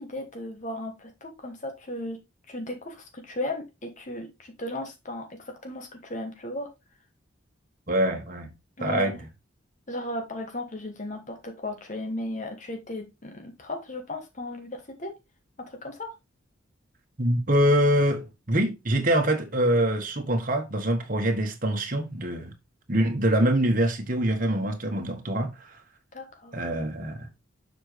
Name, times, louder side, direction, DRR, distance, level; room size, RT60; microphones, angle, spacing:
voice 1, 0.0-2.2 2.5-6.7 8.8-9.2 9.9-15.2 15.6-16.1 26.1-26.6, left 1 dB, 40° left, 1.3 m, -36 dB
voice 2, 7.9-8.5 8.8-9.3 17.2-22.5 22.9-25.8 26.5-27.3, right 1 dB, 45° right, 1.5 m, -24 dB
7.2 x 5.1 x 3.3 m
head